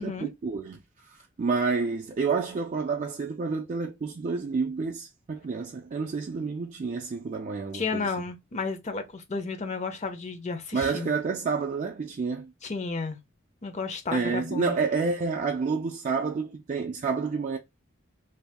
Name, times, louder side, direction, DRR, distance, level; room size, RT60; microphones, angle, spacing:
voice 1, 0.0-8.1 10.7-12.5 14.1-17.6, right 4 dB, 40° right, 0.4 m, -29 dB
voice 2, 7.7-11.1 12.6-13.2 13.6-14.8, left 4 dB, 35° left, 0.6 m, -32 dB
2.6 x 2.4 x 3.3 m
head